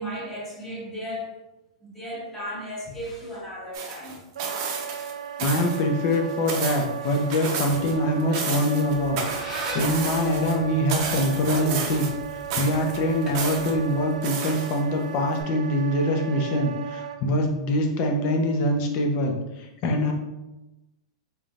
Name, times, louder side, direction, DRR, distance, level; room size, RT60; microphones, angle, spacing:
voice 1, 0.0-1.4 1.8-4.2 7.0-7.3, equal, 10° left, -6 dB, 1.2 m, -35 dB
sound 1, 3.7-5.1 5.4-5.8 6.1-7.9 8.2-10.5 10.9-12.2 12.5-13.7 14.2-15.0 15.4-15.5, right 5 dB, 40° right, 0.7 m, -32 dB
Wind instrument woodwind instrument, 4.3-17.2, right 8 dB, 90° right, 0.4 m, -36 dB
voice 2, 5.4-12.1 12.5-20.1, left 1 dB, 40° left, 2 dB, 0.7 m, -24 dB
Squeak, 8.7-14.2, right 1 dB, 15° right, 1.0 m, -41 dB
4.2 x 3.5 x 2.5 m, 1.0 s
supercardioid pair, 155°, 3 cm